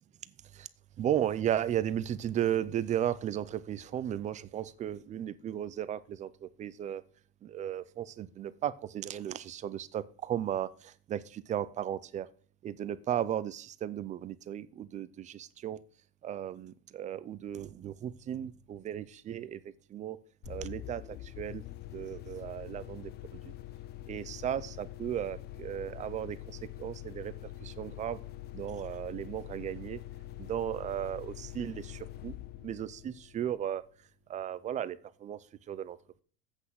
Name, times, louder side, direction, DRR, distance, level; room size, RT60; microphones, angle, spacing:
voice 1, 1.0-7.0 7.4-12.3 12.6-15.8 16.2-21.6 21.9-23.5 24.1-27.3 27.6-28.2 28.5-30.0 30.4-32.4 32.6-33.8 34.3-35.4 35.7-36.0, right 10 dB, 25° right, 16 dB, 0.4 m, -35 dB
sound 1, 20.4-33.9, left 14 dB, 35° left, 0.4 m, -45 dB
8.1 x 6.2 x 7.4 m, 0.43 s
cardioid pair, 165°, 31 cm